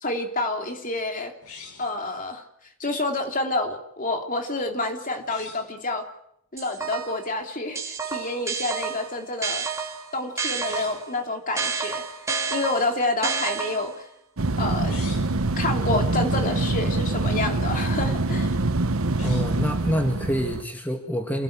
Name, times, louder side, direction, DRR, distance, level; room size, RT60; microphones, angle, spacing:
voice 1, 0.0-1.3 1.8-2.4 2.8-6.0 6.5-9.7 10.1-12.0 12.5-14.1 14.6-14.9 15.6-18.6, left 2 dB, 35° left, 4 dB, 3.2 m, -28 dB
sound 1, 1.4-2.0 5.2-5.7 10.5-11.1 14.7-15.4 19.0-19.7, left 5 dB, 85° left, 5.6 m, -44 dB
sound 2, 6.6-7.3 7.8-11.1 11.6-14.0, right 5 dB, 15° right, 2.9 m, -30 dB
sound 3, 14.4-20.6, right 2 dB, 70° right, 1.0 m, -25 dB
voice 2, 19.2-21.4, equal, 10° left, 3 dB, 2.1 m, -26 dB
28.5 x 18.0 x 8.9 m, 0.76 s
head